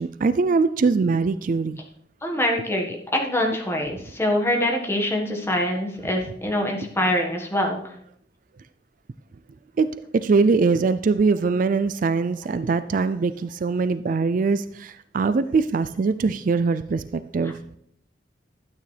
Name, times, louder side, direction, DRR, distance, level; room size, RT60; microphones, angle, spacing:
voice 1, 0.0-1.8 9.8-9.9 10.1-17.5, right 4 dB, 50° right, 13 dB, 0.4 m, -22 dB
voice 2, 2.2-7.9 17.4-17.5, left 1 dB, 15° left, 1 dB, 1.6 m, -24 dB
12.0 x 9.0 x 3.4 m, 0.69 s
head